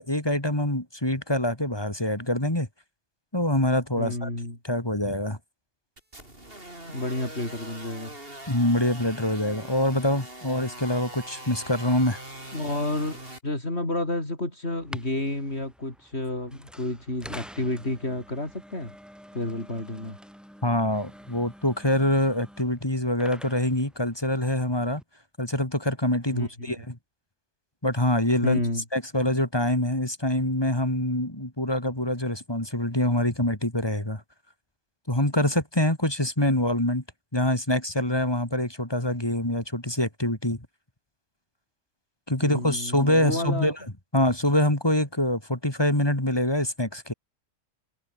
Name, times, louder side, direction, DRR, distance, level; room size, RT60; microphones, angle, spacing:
voice 1, 0.0-2.7 3.3-4.3 4.6-5.4 8.5-12.2 20.6-25.0 25.4-27.0 27.8-28.6 28.9-34.2 35.1-37.0 37.3-40.6 42.3-43.8 44.1-47.1, left 1 dB, 20° left, 3.4 m, -25 dB
voice 2, 4.0-4.6 6.9-8.2 12.5-18.9 19.3-20.2 26.3-26.7 28.4-28.8 42.4-43.7, left 1 dB, 55° left, 6.6 m, -30 dB
sound 1, 6.0-13.4, right 1 dB, 45° right, 7.9 m, -42 dB
sound 2, 14.7-25.0, equal, ahead, 7.2 m, -47 dB
omnidirectional pair, 1.3 m